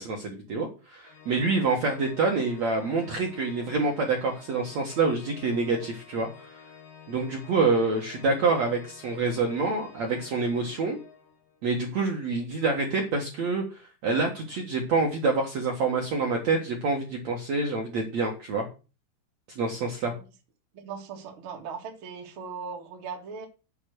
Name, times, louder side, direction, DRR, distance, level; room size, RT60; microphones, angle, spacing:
voice 1, 0.0-6.6 7.1-11.0 11.6-18.6 19.5-20.1, right 3 dB, 85° right, 1.5 m, -27 dB
Organ, 1.0-11.6, left 7 dB, 85° left, 6.0 m, -50 dB
voice 2, 20.7-23.5, right 5 dB, 65° right, 1.2 m, -39 dB
9.7 x 6.3 x 6.3 m
omnidirectional pair, 6.0 m